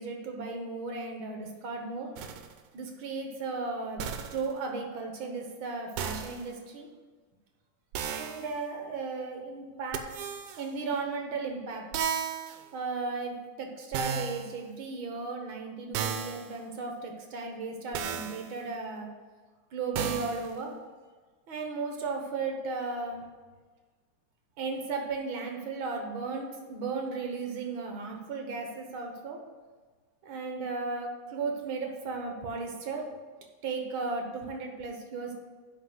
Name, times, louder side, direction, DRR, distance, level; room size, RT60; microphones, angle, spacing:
voice 1, 0.0-2.1 2.7-4.0 4.3-6.9 8.0-10.0 10.6-11.8 12.7-19.1 19.7-20.7 21.5-23.2 24.6-29.4 30.2-33.0 33.6-35.5, right 4 dB, 55° right, 2 dB, 1.5 m, -35 dB
sound 1, 2.2-2.5 4.0-4.5 6.0-6.5 7.9-8.5 9.9-10.7 11.9-12.6 13.9-14.6 15.9-16.5 17.9-18.5 20.0-20.6, right 7 dB, 85° right, 2.3 m, -34 dB
10.5 x 4.3 x 7.8 m, 1.4 s
omnidirectional pair, 3.6 m